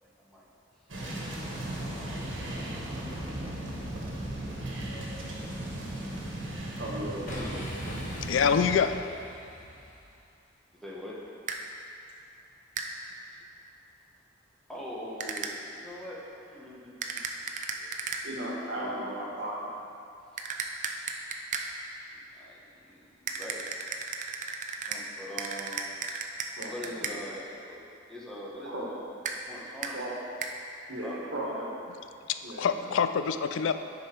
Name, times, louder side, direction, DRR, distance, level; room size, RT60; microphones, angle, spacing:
voice 1, 0.0-0.5 1.7-3.5 10.8-11.2 14.7-17.5 17.7-18.1 18.6-19.1 22.1-23.6 24.9-25.8 26.7-29.1 29.4-30.0 31.0-31.6, equal, ahead, -6 dB, 1.2 m, -43 dB
sound 1, 0.9-8.8, right 1 dB, 85° right, 1.5 m, -36 dB
voice 2, 6.8-8.4 18.2-19.7 26.5-27.3 28.6-28.9 29.9-30.1 30.9-31.7 32.4-32.9, right 1 dB, 65° right, -3 dB, 1.5 m, -37 dB
Boom, 7.2-10.2, left 1 dB, 45° left, 1.3 m, -42 dB
voice 3, 8.2-8.9 32.3-33.7, left 6 dB, 85° left, 9 dB, 0.4 m, -26 dB
sound 2, 11.5-11.6 12.8-12.9 15.2-15.5 17.0-18.2 20.4-21.7 23.3-25.0 25.4-27.2 29.2-29.4 29.8-29.9 30.4-30.5, right 5 dB, 40° right, 0.5 m, -34 dB
9.7 x 5.2 x 4.5 m, 2.5 s
head